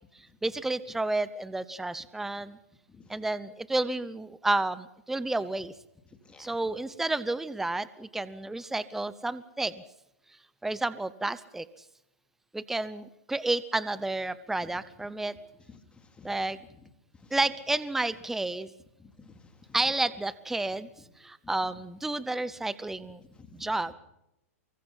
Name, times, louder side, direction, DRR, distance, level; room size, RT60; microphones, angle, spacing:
voice 1, 0.4-2.6 3.1-5.7 6.4-9.8 10.6-11.7 12.5-15.3 16.2-16.6 17.3-18.7 19.7-20.9 21.2-23.2 23.5-23.9, right 2 dB, 5° right, 16 dB, 0.7 m, -31 dB
voice 2, 15.7-16.3 17.2-17.4 19.0-19.8 21.4-21.5 23.3-23.9, left 4 dB, 15° left, 7 dB, 2.7 m, -53 dB
24.0 x 23.5 x 5.6 m, 0.83 s
hypercardioid pair, 135°, 8 cm